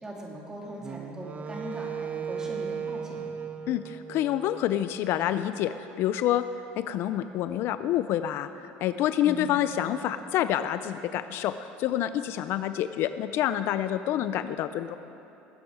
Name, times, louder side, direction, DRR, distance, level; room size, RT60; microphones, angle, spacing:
voice 1, 0.0-3.3 9.2-9.5, equal, 15° right, -2 dB, 2.9 m, -40 dB
Wind instrument woodwind instrument, 0.8-5.0, right 7 dB, 30° right, 0.6 m, -36 dB
voice 2, 3.7-6.4 6.8-15.0, left 11 dB, 60° left, 12 dB, 0.5 m, -28 dB
19.5 x 9.3 x 4.9 m, 3.0 s
supercardioid pair, 105°, 5 cm